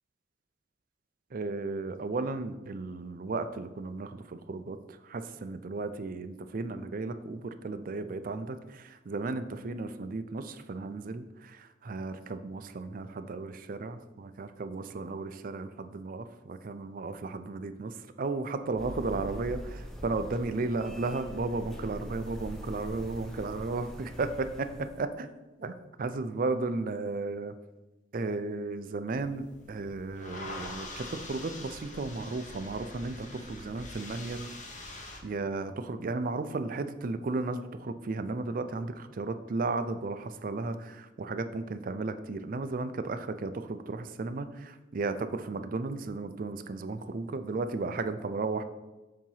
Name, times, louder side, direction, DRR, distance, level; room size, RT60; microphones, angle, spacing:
voice 1, 1.3-4.8 5.0-24.3 25.0-25.3 25.6-25.7 26.0-27.5 28.1-34.5 35.2-48.6, right 3 dB, 45° right, 10 dB, 0.4 m, -34 dB
sound 1, 18.8-25.0, equal, ahead, 0.6 m, -43 dB
sound 2, 29.1-35.2, left 2 dB, 40° left, 0.9 m, -44 dB
7.4 x 2.9 x 5.5 m, 1.1 s
head